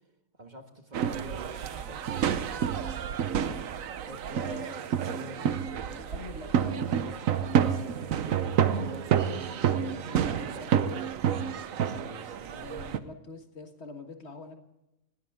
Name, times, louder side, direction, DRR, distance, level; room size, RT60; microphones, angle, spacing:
voice 1, 0.4-2.3 4.0-4.7 5.1-5.5 7.4-10.2 10.5-10.9 11.9-12.8, right 1 dB, 35° right, 5 dB, 1.7 m, -46 dB
sound 1, 0.9-13.0, right 8 dB, 90° right, 1.3 m, -29 dB
voice 2, 4.2-7.0 9.8-10.5 10.8-11.0 12.5-14.6, left 3 dB, 55° left, 5 dB, 1.9 m, -45 dB
20.0 x 16.5 x 3.6 m, 0.93 s
omnidirectional pair, 1.3 m